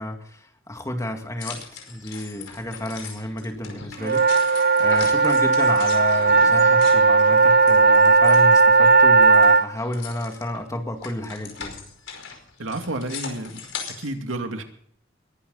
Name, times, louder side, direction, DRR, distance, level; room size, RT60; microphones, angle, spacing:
voice 1, 0.0-11.8, left 1 dB, 15° left, 4 dB, 2.3 m, -31 dB
sound 1, 1.4-8.9 9.2-14.1, left 6 dB, 75° left, 5.0 m, -39 dB
sound 2, 4.0-9.6, right 4 dB, 50° right, 0.9 m, -16 dB
voice 2, 12.6-13.6 14.0-14.6, right 2 dB, 85° right, 5 dB, 2.5 m, -30 dB
22.5 x 12.5 x 4.1 m, 0.64 s
head